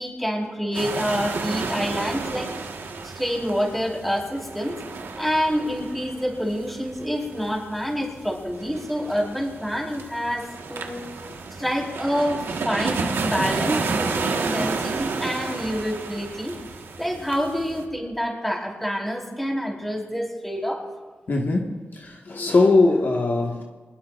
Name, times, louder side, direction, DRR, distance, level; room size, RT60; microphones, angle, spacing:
voice 1, 0.0-2.5 3.0-4.8 5.2-11.0 11.6-16.6 17.0-20.8, equal, 5° left, -1 dB, 4.4 m, -27 dB
sound 1, 0.7-17.8, right 4 dB, 80° right, 1.6 m, -31 dB
voice 2, 21.3-23.6, left 3 dB, 55° left, 0 dB, 1.7 m, -20 dB
24.5 x 20.0 x 2.6 m, 1.4 s
cardioid pair, 70°, 4 cm